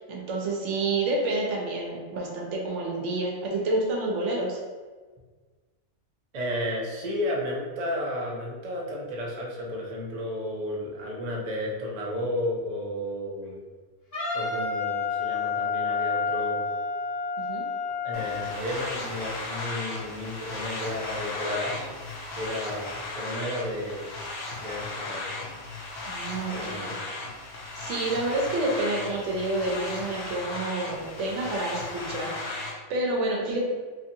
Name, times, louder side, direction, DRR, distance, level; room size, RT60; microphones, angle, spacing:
voice 1, 0.0-4.6 17.5-17.6 26.0-26.9 27.7-33.6, right 2 dB, 80° right, -1 dB, 1.0 m, -29 dB
voice 2, 6.3-13.6 14.3-16.6 18.0-21.9 22.3-24.1 24.6-25.3 26.5-27.0, left 1 dB, 50° right, -2 dB, 0.5 m, -33 dB
Wind instrument woodwind instrument, 14.1-18.6, left 5 dB, 45° left, 1.3 m, -29 dB
sound 1, 18.1-32.7, left 2 dB, 65° left, 0.8 m, -36 dB
2.8 x 2.7 x 2.6 m, 1.4 s
omnidirectional pair, 1.2 m